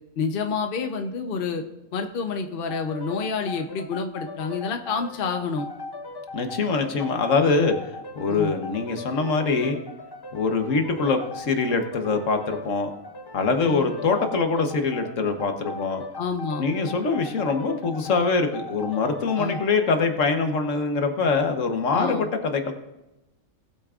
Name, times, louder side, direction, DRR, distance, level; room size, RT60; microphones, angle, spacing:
voice 1, 0.2-1.6 1.9-5.7 7.5-7.7 8.3-8.5 13.7-13.9 16.2-16.6 19.4-19.6 21.9-22.3, left 5 dB, 50° left, 5 dB, 0.9 m, -28 dB
sound 1, 2.7-20.1, left 2 dB, 30° left, 0.4 m, -39 dB
voice 2, 6.3-7.8 8.2-9.8 10.3-12.9 13.3-16.0 16.6-22.7, left 4 dB, 70° left, 6 dB, 1.4 m, -24 dB
18.5 x 8.4 x 2.4 m, 0.96 s
omnidirectional pair, 1.4 m